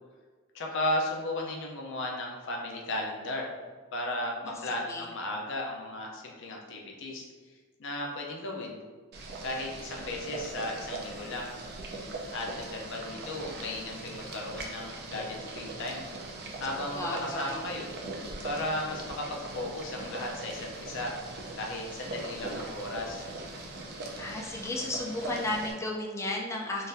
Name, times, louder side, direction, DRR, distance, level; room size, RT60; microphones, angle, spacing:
voice 1, 0.5-3.5 3.9-7.3 7.8-8.8 9.4-11.5 12.3-16.0 16.6-17.9 18.4-21.3 21.6-23.2, left 1 dB, 60° left, -1 dB, 0.6 m, -35 dB
voice 2, 4.4-5.1 16.8-17.6 24.2-26.9, left 2 dB, 15° left, -1 dB, 0.3 m, -34 dB
Boiling, 9.1-25.7, right 2 dB, 50° right, 0.5 m, -40 dB
3.9 x 2.5 x 2.6 m, 1.4 s
head